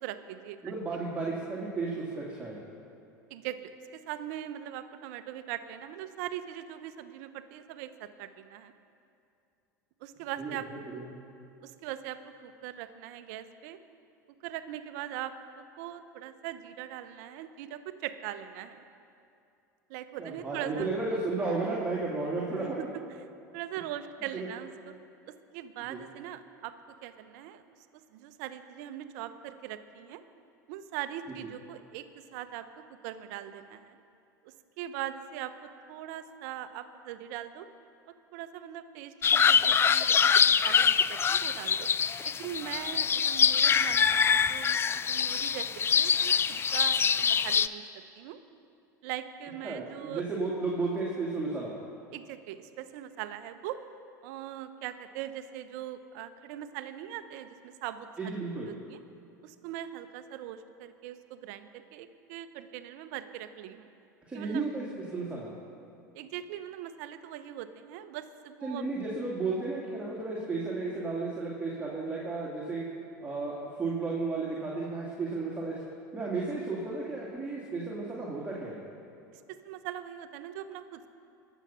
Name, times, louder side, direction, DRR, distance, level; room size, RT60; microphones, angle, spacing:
voice 1, 0.0-0.7 3.3-8.7 10.0-10.7 11.6-13.8 14.4-18.8 19.9-20.9 22.6-22.7 23.5-24.9 25.3-26.7 27.0-27.6 28.1-30.2 30.7-34.0 34.4-35.5 35.9-37.7 38.1-40.3 40.6-41.9 42.2-48.4 49.0-50.3 52.1-53.8 54.2-58.4 58.9-59.0 59.4-63.9 64.3-64.6 66.1-68.9 79.3-81.1, right 11 dB, 60° right, 11 dB, 0.8 m, -41 dB
voice 2, 0.6-2.6 10.4-10.6 10.9-11.2 20.2-22.8 24.3-24.5 25.9-26.0 49.6-51.7 58.2-58.7 64.3-64.8 65.1-65.5 68.6-72.8 73.2-75.8 76.1-78.8, right 3 dB, 15° right, -5 dB, 2.4 m, -33 dB
sound 1, 39.2-47.7, left 7 dB, 25° left, 0.4 m, -24 dB
21.5 x 7.2 x 5.6 m, 2.6 s
hypercardioid pair, 80°, 10 cm